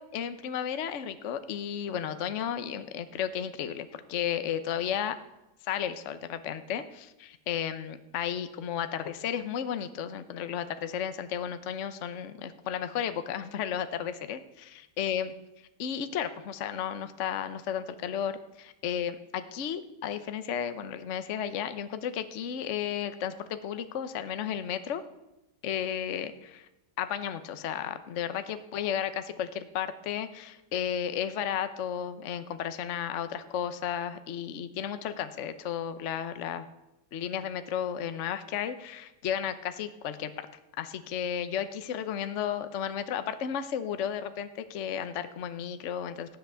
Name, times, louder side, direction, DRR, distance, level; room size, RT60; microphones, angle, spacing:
voice 1, 0.0-5.2 5.6-15.3 15.8-25.0 25.6-26.7 27.0-36.7 37.1-40.3 40.8-46.4, left 9 dB, 50° left, 10 dB, 0.9 m, -33 dB
15.0 x 10.5 x 6.9 m, 0.96 s
omnidirectional pair, 2.2 m